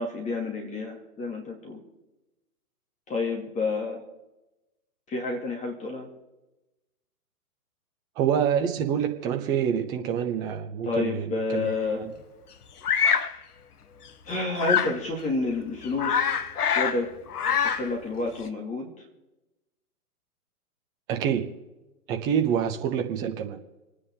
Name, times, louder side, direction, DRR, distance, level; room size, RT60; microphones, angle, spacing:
voice 1, 0.0-1.8 3.1-4.0 5.1-6.1 10.8-12.1 14.3-16.3 16.7-17.2 17.5-18.9, left 3 dB, 15° left, 1 dB, 2.4 m, -29 dB
voice 2, 8.2-11.7 12.0-12.1 21.1-21.5 22.1-23.6, right 8 dB, 10° right, 5 dB, 0.4 m, -26 dB
Bird vocalization bird call bird song, 12.8-13.3 14.6-15.0 15.5-15.6 15.8-17.0 17.3-17.9, left 7 dB, 75° left, 1.4 m, -24 dB
27.5 x 9.8 x 3.7 m, 1.0 s
hypercardioid pair, 140°, 46 cm